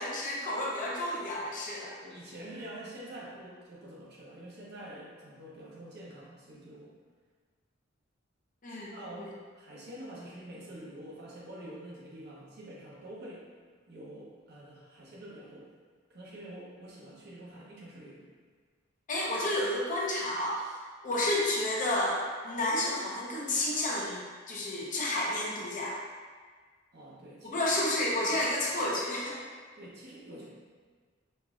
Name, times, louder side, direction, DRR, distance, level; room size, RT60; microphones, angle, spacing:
voice 1, 0.0-1.9 8.6-9.3 19.1-20.8 21.0-26.0 27.4-29.4, left 1 dB, 40° left, -4 dB, 0.7 m, -31 dB
voice 2, 2.0-6.9 8.7-13.5 13.9-15.7 16.1-18.3 26.9-27.9 29.8-30.4, right 1 dB, 55° right, -6 dB, 0.9 m, -46 dB
5.2 x 2.6 x 2.4 m, 1.5 s
head